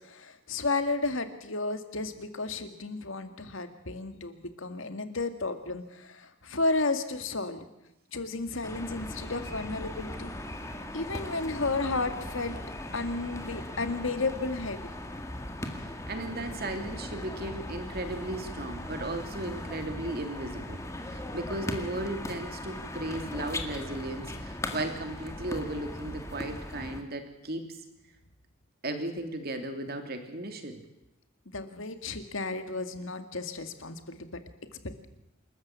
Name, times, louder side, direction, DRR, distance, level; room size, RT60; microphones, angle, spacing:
voice 1, 0.0-7.7 8.1-10.3 10.9-12.6 12.9-14.9 31.5-34.4 34.8-35.1, left 3 dB, 70° left, 8 dB, 2.1 m, -33 dB
sound 1, 8.6-27.0, left 1 dB, 15° left, 1.9 m, -39 dB
voice 2, 15.8-27.8 28.8-30.8, right 1 dB, 50° right, 6 dB, 2.9 m, -36 dB
27.0 x 14.0 x 8.4 m, 0.90 s
head